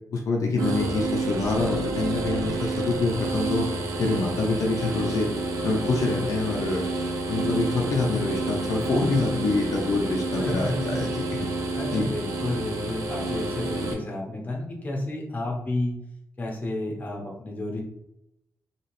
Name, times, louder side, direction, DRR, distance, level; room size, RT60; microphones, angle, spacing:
voice 1, 0.1-3.7 4.0-5.3 5.6-6.9 7.3-11.5 11.9-12.1, left 3 dB, 70° left, 0 dB, 0.5 m, -26 dB
sound 1, 0.6-13.9, right 2 dB, 85° right, 0.6 m, -29 dB
voice 2, 10.3-10.7 11.7-16.0 16.4-17.8, left 1 dB, 30° left, -1 dB, 0.8 m, -31 dB
2.9 x 2.8 x 3.0 m, 0.84 s
wide cardioid pair, 120°, 6 cm